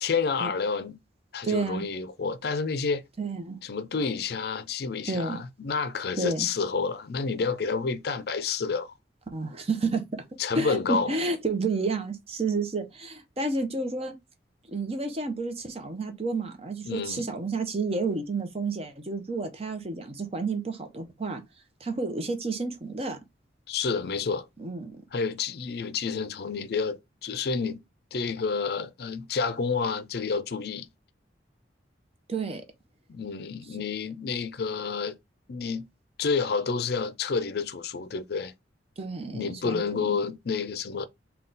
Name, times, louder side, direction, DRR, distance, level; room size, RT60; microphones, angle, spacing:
voice 1, 0.0-1.0 1.3-3.0 3.6-8.9 10.4-11.1 16.8-17.3 23.7-24.5 25.1-27.8 28.1-30.9 33.1-35.2 35.5-35.9 36.2-38.5 39.3-41.1, left 5 dB, 60° left, 0.4 m, -29 dB
voice 2, 1.4-1.8 3.2-3.6 5.0-5.4 6.2-6.5 9.3-10.0 10.6-14.2 14.7-21.4 21.8-23.2 24.6-25.0 32.3-32.6 39.0-40.1, right 3 dB, 35° right, 0.7 m, -30 dB
3.7 x 2.3 x 3.8 m
head